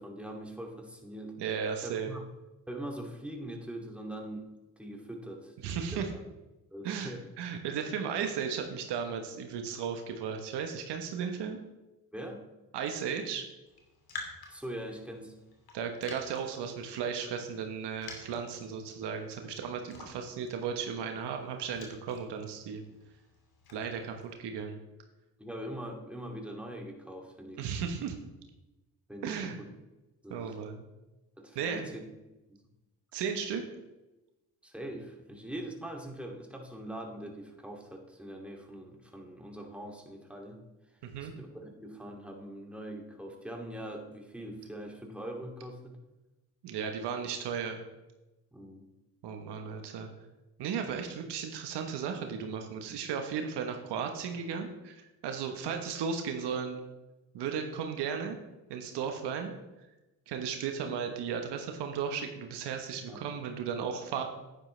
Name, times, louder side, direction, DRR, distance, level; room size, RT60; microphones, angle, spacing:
voice 1, 0.0-1.4 1.8-2.3 2.7-4.5 4.8-6.2 6.7-7.2 12.1-12.4 14.5-15.3 25.4-27.7 29.1-29.7 30.2-30.6 31.4-32.0 32.5-32.6 34.6-40.6 41.2-46.0 48.5-48.9 63.1-63.2, right 1 dB, 5° right, 0 dB, 2.5 m, -42 dB
voice 2, 1.4-2.1 5.6-6.1 6.8-11.6 12.7-13.4 15.7-22.8 23.7-24.8 27.6-28.2 29.2-29.6 30.3-30.9 31.5-31.9 33.1-33.6 41.1-41.3 46.6-47.8 49.2-50.1 50.6-56.8 57.3-58.4 58.7-59.5 60.3-64.2, right 6 dB, 75° right, 5 dB, 1.2 m, -35 dB
Raindrop, 13.7-24.3, left 3 dB, 60° left, 2.7 m, -50 dB
10.5 x 9.9 x 3.3 m, 1.0 s
supercardioid pair, 50°, 41 cm